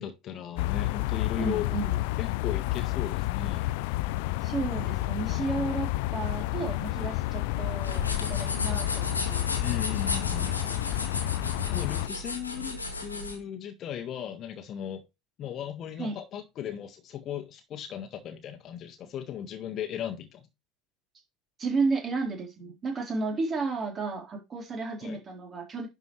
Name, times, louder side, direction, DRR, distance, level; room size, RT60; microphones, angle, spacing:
voice 1, 0.0-1.7 2.2-3.8 9.6-10.7 11.7-15.0 15.4-20.5 25.0-25.2, left 10 dB, 40° left, 1.5 m, -37 dB
sound 1, 0.6-12.1, left 18 dB, 60° left, 0.5 m, -30 dB
voice 2, 1.4-1.9 4.4-9.5 10.4-10.5 16.0-16.2 21.6-25.9, right 3 dB, 30° right, 3.8 m, -32 dB
sound 2, 7.8-13.4, left 2 dB, 85° left, 1.6 m, -35 dB
11.0 x 5.4 x 3.2 m
figure-of-eight pair, 70°, 0 cm